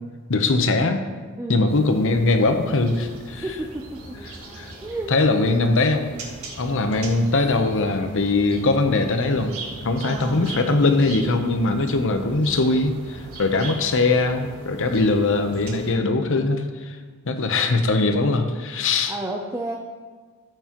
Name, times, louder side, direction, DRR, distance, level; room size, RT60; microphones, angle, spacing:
voice 1, 0.3-1.0 1.5-3.5 4.2-4.7 5.1-6.1 6.6-9.5 9.8-17.0 17.3-19.2, left 3 dB, 60° left, 7 dB, 0.8 m, -21 dB
voice 2, 1.4-1.7 3.3-4.2 4.8-5.1 10.0-10.6 19.1-19.8, right 1 dB, 10° right, 0 dB, 0.5 m, -31 dB
sound 1, 1.7-15.9, right 2 dB, 70° right, 1.6 m, -40 dB
13.5 x 7.9 x 3.0 m, 1.5 s
head